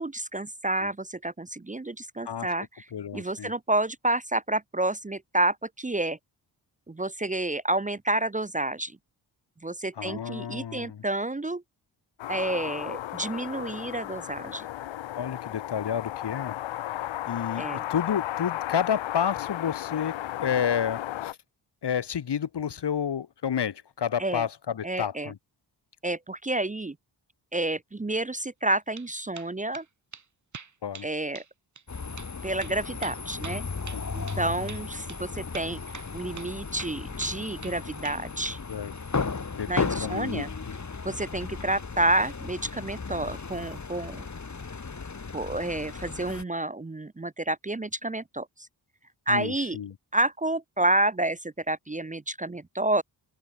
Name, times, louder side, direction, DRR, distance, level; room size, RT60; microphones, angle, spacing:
voice 1, 0.0-2.8 3.1-6.2 6.9-9.0 9.6-11.6 12.3-14.7 17.5-17.8 24.2-24.4 24.8-25.3 26.0-27.0 27.5-29.8 31.0-31.4 32.4-33.6 34.1-35.8 36.1-38.6 39.7-40.5 41.0-44.3 45.3-48.7 49.3-49.8 50.1-53.0, right 2 dB, 15° right, 0.9 m, -29 dB
voice 2, 2.9-3.5 10.0-11.0 15.2-16.5 17.3-21.4 21.8-25.4 30.8-31.1 33.9-34.1 38.7-38.9 39.5-40.5 49.3-49.9, left 8 dB, 65° left, 1.7 m, -30 dB
sound 1, 12.2-21.3, left 13 dB, 85° left, 0.8 m, -34 dB
sound 2, 28.7-29.1 29.3-29.9 30.1-30.2 30.5-31.1 31.3-31.5 31.8-31.9 32.2-32.3 32.6-34.4 34.7-34.8 35.1-35.2 35.5-36.1 36.4-36.5 36.8-37.8 38.0-38.6, right 5 dB, 40° right, 1.7 m, -43 dB
sound 3, 31.9-46.4, left 4 dB, 40° left, 2.9 m, -35 dB
open air
cardioid pair, 60°, 44 cm